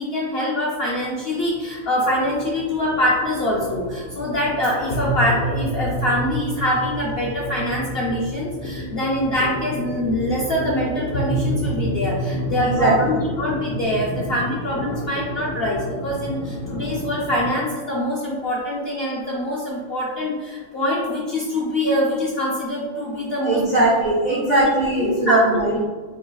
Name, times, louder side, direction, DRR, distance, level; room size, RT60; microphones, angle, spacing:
voice 1, 0.0-23.8 24.5-24.7 25.0-25.6, left 1 dB, 60° left, -4 dB, 0.6 m, -24 dB
sound 1, 0.8-17.6, equal, 85° left, 1.2 m, -29 dB
voice 2, 12.6-13.0 23.4-25.8, right 1 dB, 80° right, -5 dB, 0.4 m, -19 dB
3.1 x 2.6 x 3.8 m, 1.5 s
omnidirectional pair, 1.5 m